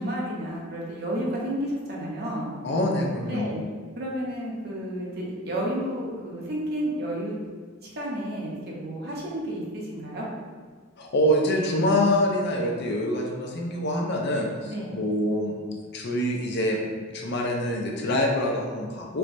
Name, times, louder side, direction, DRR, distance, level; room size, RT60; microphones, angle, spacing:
voice 1, 0.0-2.5 3.3-3.6 4.0-7.3 7.8-10.3 14.6-14.9, equal, 55° right, -4 dB, 0.7 m, -31 dB
voice 2, 2.6-3.5 11.0-15.5 15.9-16.8 17.1-19.2, left 1 dB, 55° left, 0 dB, 0.5 m, -25 dB
4.4 x 2.2 x 2.5 m, 1.5 s
head